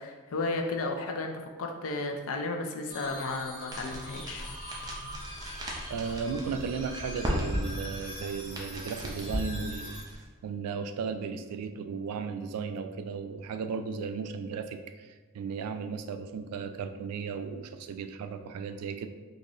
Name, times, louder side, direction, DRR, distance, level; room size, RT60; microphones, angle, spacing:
voice 1, 0.0-4.4, left 3 dB, 65° left, 4 dB, 0.4 m, -33 dB
sound 1, 2.9-10.0, equal, 40° right, 1.2 m, -43 dB
sound 2, 3.7-10.2, equal, 15° right, 0.5 m, -37 dB
voice 2, 5.9-19.1, right 5 dB, 90° right, 9 dB, 0.3 m, -35 dB
3.9 x 2.5 x 2.9 m, 1.3 s
head